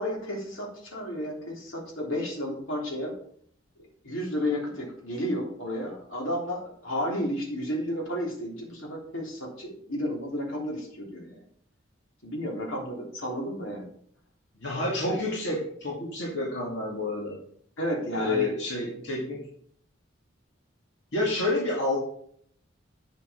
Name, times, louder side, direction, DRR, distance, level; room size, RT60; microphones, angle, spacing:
voice 1, 0.0-3.1 4.0-11.3 12.2-13.9 15.1-15.2 17.8-18.5, equal, 75° left, -2 dB, 3.3 m, -32 dB
voice 2, 14.6-17.4 18.1-19.4 21.1-22.0, left 2 dB, 60° left, -4 dB, 2.3 m, -29 dB
8.9 x 7.1 x 5.1 m, 0.63 s
head